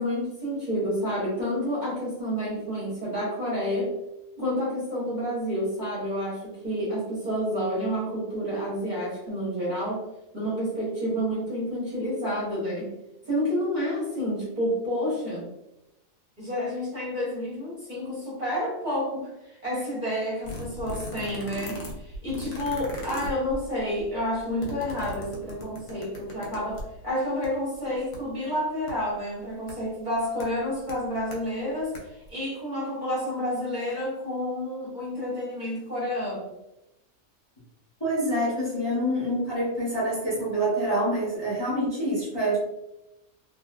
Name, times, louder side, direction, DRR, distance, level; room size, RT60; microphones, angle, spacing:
voice 1, 0.0-3.9 4.4-10.0 10.3-12.9 13.2-15.5 16.4-36.4, equal, 35° right, -8 dB, 1.1 m, -29 dB
sound 1, 20.4-27.0 27.4-27.5 27.8-28.2 28.9-29.0 29.7-29.8 30.4-30.5 30.9-31.4 31.8-32.3, left 1 dB, 80° left, 1.1 m, -38 dB
voice 2, 38.0-42.6, right 1 dB, 20° left, -11 dB, 0.8 m, -26 dB
2.6 x 2.3 x 2.3 m, 0.91 s
omnidirectional pair, 1.4 m